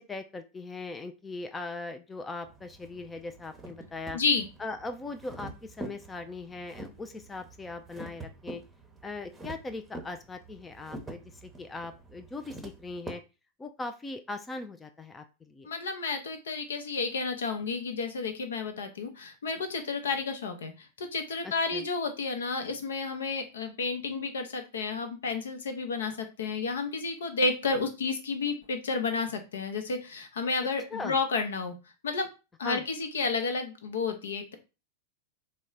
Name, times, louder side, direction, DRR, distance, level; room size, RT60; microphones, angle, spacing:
voice 1, 0.0-4.2 4.6-8.6 9.0-13.2 13.6-15.7 21.4-21.8 30.9-31.2 32.6-32.8, left 3 dB, 15° left, 8 dB, 0.4 m, -40 dB
sound 1, 2.4-13.1, right 2 dB, 10° right, 0.8 m, -46 dB
voice 2, 4.1-4.4 15.6-31.7 32.0-32.3 32.6-34.5, left 4 dB, 65° left, 6 dB, 0.7 m, -31 dB
4.0 x 2.2 x 3.8 m, 0.30 s
figure-of-eight pair, 90°, 0 cm